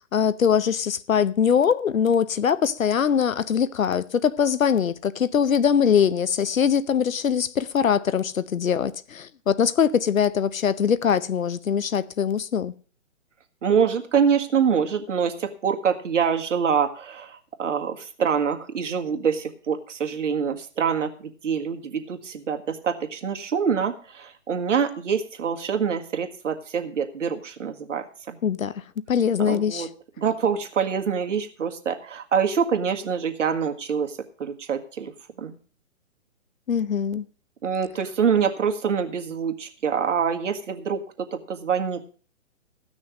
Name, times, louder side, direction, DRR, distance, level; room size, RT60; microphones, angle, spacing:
voice 1, 0.1-12.7 28.4-28.7 29.1-29.9 36.7-37.3, left 7 dB, 85° left, 0.9 m, -22 dB
voice 2, 13.6-21.1 21.4-28.4 29.4-29.9 30.2-35.1 35.4-35.6 37.6-42.0, right 7 dB, 65° right, 1.9 m, -25 dB
15.0 x 6.3 x 6.4 m
hypercardioid pair, 145°, 39 cm